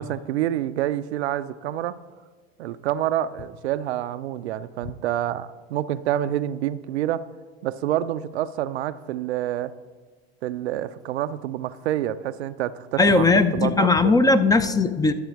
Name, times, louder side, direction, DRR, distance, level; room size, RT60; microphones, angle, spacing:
voice 1, 0.0-1.9 2.6-7.2 7.6-9.7 10.4-13.2 13.5-14.2, right 12 dB, 85° right, 14 dB, 0.5 m, -27 dB
voice 2, 13.0-15.1, left 3 dB, 10° left, 11 dB, 0.4 m, -18 dB
11.5 x 6.7 x 4.6 m, 1.4 s
hypercardioid pair, 95°, 32 cm